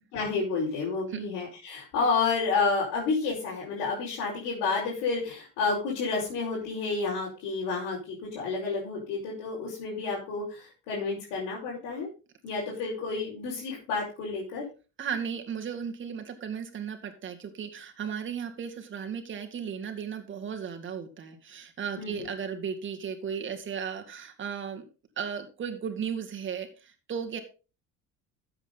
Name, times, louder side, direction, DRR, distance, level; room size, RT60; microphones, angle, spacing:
voice 1, 0.1-12.1 12.4-14.6 22.0-22.3, left 4 dB, 80° left, -5 dB, 5.2 m, -30 dB
voice 2, 15.0-24.9 25.2-27.4, right 7 dB, 40° right, 5 dB, 2.2 m, -35 dB
12.5 x 8.2 x 3.9 m, 0.33 s
cardioid pair, 120°, 32 cm